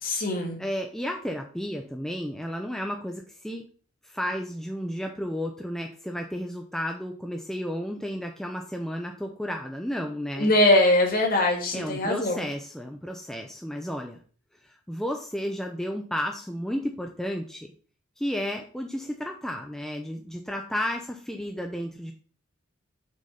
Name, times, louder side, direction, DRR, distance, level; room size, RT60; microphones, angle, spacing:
voice 1, 0.0-0.6 10.4-12.4, left 1 dB, 45° left, 1 dB, 1.8 m, -22 dB
voice 2, 0.6-3.7 4.0-10.5 11.7-14.2 14.6-17.7 18.2-22.1, equal, ahead, 2 dB, 0.5 m, -32 dB
6.3 x 3.9 x 5.6 m, 0.42 s
head